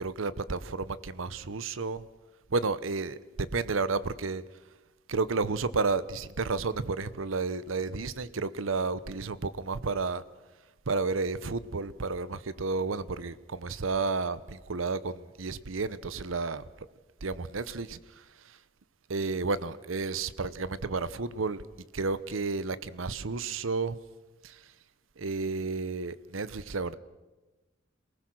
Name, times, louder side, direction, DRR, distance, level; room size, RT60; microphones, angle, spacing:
voice 1, 0.0-2.0 2.5-4.4 5.1-10.2 10.9-16.9 17.2-18.6 19.1-21.6 21.9-24.0 24.4-24.7 25.2-26.9, right 4 dB, 90° right, 0.8 m, -32 dB
27.5 x 19.5 x 6.3 m
head